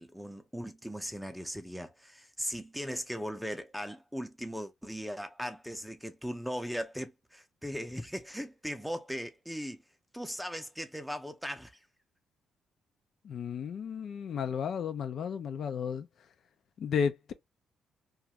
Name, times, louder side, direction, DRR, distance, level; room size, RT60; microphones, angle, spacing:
voice 1, 0.0-9.8 10.1-11.8, equal, ahead, 0.5 m, -38 dB
voice 2, 13.2-16.1 16.8-17.3, left 7 dB, 65° left, 0.4 m, -33 dB
2.5 x 2.3 x 2.9 m
cardioid pair, 90°, 0 cm